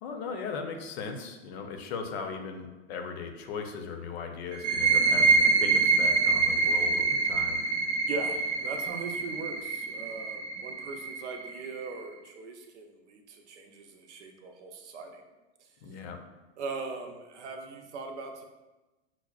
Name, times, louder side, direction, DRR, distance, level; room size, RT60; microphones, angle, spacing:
voice 1, 0.0-7.6 15.8-16.2, left 5 dB, 65° left, 5 dB, 0.6 m, -38 dB
sound 1, 4.5-11.9, right 4 dB, 45° right, 0.7 m, -26 dB
voice 2, 8.1-15.2 16.6-18.4, right 3 dB, 90° right, 4 dB, 0.7 m, -40 dB
6.0 x 2.0 x 2.3 m, 1.1 s
hypercardioid pair, 130°, 34 cm